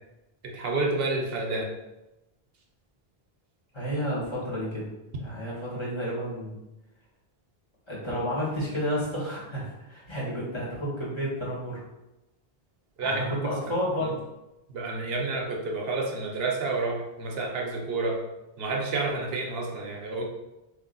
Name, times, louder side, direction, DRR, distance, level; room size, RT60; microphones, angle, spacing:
voice 1, 0.4-1.7 13.0-13.2 14.0-14.1 14.7-18.2 18.6-20.2, right 3 dB, 75° right, 0 dB, 0.9 m, -29 dB
voice 2, 3.7-4.9 5.2-6.6 7.9-11.8 13.0-14.1, equal, 30° left, -7 dB, 1.2 m, -31 dB
3.2 x 2.5 x 3.9 m, 0.97 s
omnidirectional pair, 1.0 m